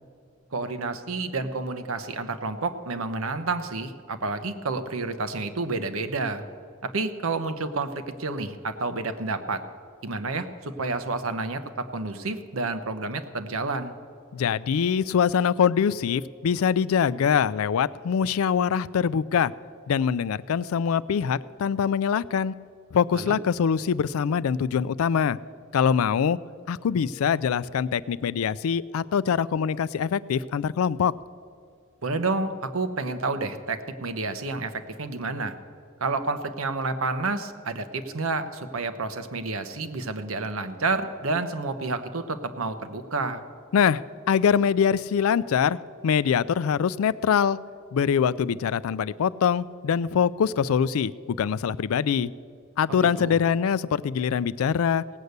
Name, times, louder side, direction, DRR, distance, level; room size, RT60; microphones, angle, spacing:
voice 1, 0.5-6.5 6.8-9.6 10.0-13.9 23.1-23.4 32.0-35.6 36.0-43.4 52.9-53.4, right 3 dB, 85° right, 9 dB, 0.9 m, -30 dB
voice 2, 14.3-19.5 19.9-22.5 22.9-25.4 25.7-26.4 26.7-31.1 43.7-44.0 44.3-45.8 46.0-47.6 47.9-52.3 52.8-55.0, left 7 dB, 85° left, 18 dB, 0.4 m, -23 dB
18.0 x 8.1 x 6.6 m, 2.4 s
head